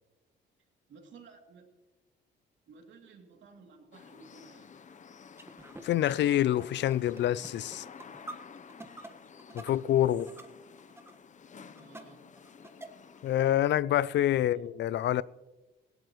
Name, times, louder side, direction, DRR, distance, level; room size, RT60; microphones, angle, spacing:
voice 1, 0.9-1.7 2.7-4.8 11.7-12.3 14.3-14.7 15.1-15.2, right 4 dB, 70° right, 2.8 m, -55 dB
sound 1, 3.9-13.4, left 6 dB, 40° left, 0.8 m, -52 dB
sound 2, 5.3-10.5 10.8-11.2 11.6-12.0 12.3-13.2, right 2 dB, 10° right, 1.4 m, -47 dB
voice 2, 5.8-7.8 9.6-10.3 13.2-15.2, left 12 dB, 65° left, 0.4 m, -26 dB
18.0 x 17.0 x 3.1 m
cardioid pair, 90°, 20 cm